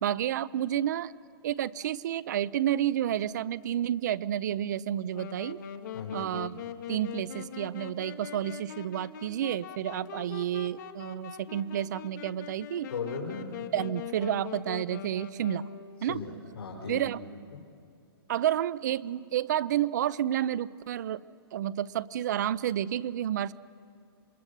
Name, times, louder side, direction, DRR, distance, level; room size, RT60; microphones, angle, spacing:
voice 1, 0.0-1.1 1.4-5.6 6.1-6.6 6.9-12.9 13.7-15.7 16.0-16.2 16.9-17.2 18.3-21.2 21.5-23.5, right 11 dB, 45° right, 20 dB, 0.5 m, -30 dB
Wind instrument woodwind instrument, 5.1-16.1, left 9 dB, 50° left, 1.3 m, -42 dB
voice 2, 5.9-6.4 12.9-13.5 16.0-17.1 17.5-17.6, left 5 dB, 75° left, -3 dB, 4.4 m, -37 dB
27.0 x 22.5 x 6.8 m, 2.4 s
hypercardioid pair, 165°, 13 cm